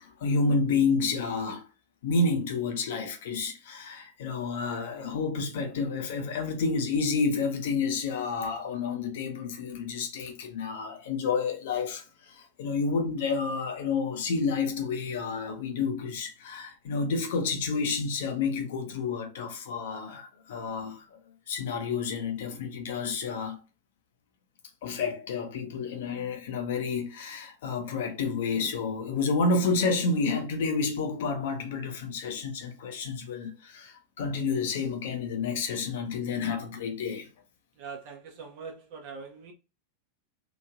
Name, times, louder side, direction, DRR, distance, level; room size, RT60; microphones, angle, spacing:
voice 1, 0.0-1.6 2.0-21.2 21.5-23.6 24.8-37.3, left 4 dB, 55° left, 0.7 m, -30 dB
voice 2, 37.8-39.5, right 5 dB, 45° right, 0.6 m, -42 dB
3.0 x 2.6 x 2.3 m
figure-of-eight pair, 90°, 0 cm